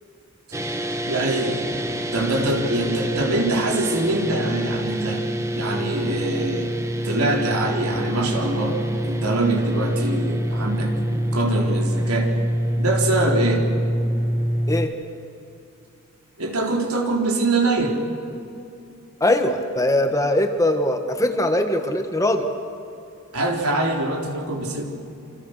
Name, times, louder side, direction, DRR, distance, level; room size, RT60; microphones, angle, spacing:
sound 1, 0.5-14.9, equal, 15° right, 1.3 m, -25 dB
voice 1, 1.1-1.8 2.1-5.2 5.5-6.7 7.0-8.8 9.0-12.3 12.8-13.7 16.4-18.0 23.3-24.8, right 2 dB, 80° right, 1 dB, 4.0 m, -24 dB
voice 2, 19.2-22.5, left 1 dB, 15° left, 6 dB, 1.6 m, -21 dB
28.0 x 27.0 x 6.6 m, 2.6 s
head